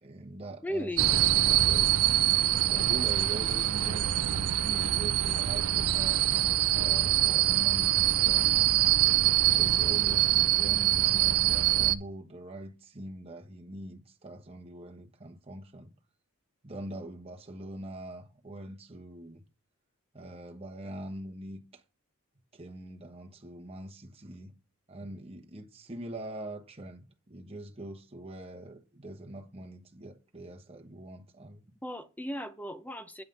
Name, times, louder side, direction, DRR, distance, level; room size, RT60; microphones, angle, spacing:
voice 1, 0.0-2.0 2.6-8.6 9.4-15.9 16.6-19.4 20.1-21.8 22.5-24.5 24.9-31.6, right 1 dB, 25° right, 1.1 m, -43 dB
voice 2, 0.6-1.1 31.8-33.2, equal, 5° left, 0.7 m, -36 dB
sound 1, 1.0-11.9, right 13 dB, 80° right, 0.5 m, -24 dB
9.1 x 5.6 x 5.3 m
head